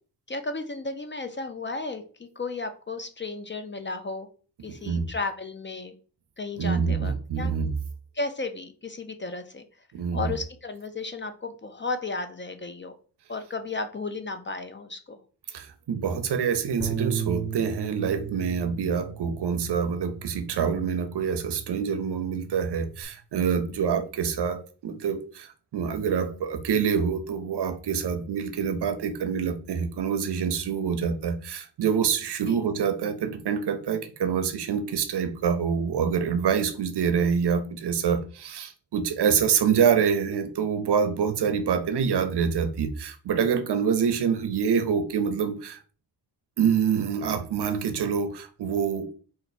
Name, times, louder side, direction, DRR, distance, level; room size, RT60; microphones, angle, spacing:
voice 1, 0.3-4.3 4.6-5.9 6.4-7.5 8.1-9.6 10.1-13.0 13.3-15.2 32.5-32.6, left 3 dB, 30° left, 0.3 m, -34 dB
voice 2, 4.7-5.1 6.6-7.7 9.9-10.3 15.5-45.8 46.6-49.1, right 7 dB, 70° right, 0.6 m, -26 dB
Bass guitar, 16.8-23.0, right 8 dB, 5° right, 0.7 m, -36 dB
4.4 x 2.5 x 4.1 m
wide cardioid pair, 160°, 41 cm